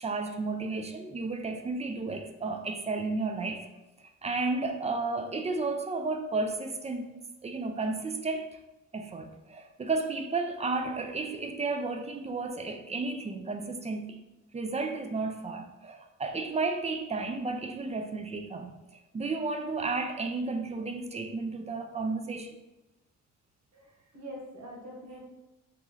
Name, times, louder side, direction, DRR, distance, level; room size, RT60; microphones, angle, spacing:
voice 1, 0.0-3.7 4.2-7.1 7.4-8.5 8.9-14.2 14.5-22.6, right 3 dB, 20° right, 5 dB, 0.4 m, -33 dB
voice 2, 23.7-25.3, equal, 70° right, -3 dB, 1.4 m, -44 dB
3.0 x 2.8 x 3.7 m, 0.99 s
cardioid pair, 90°, 30 cm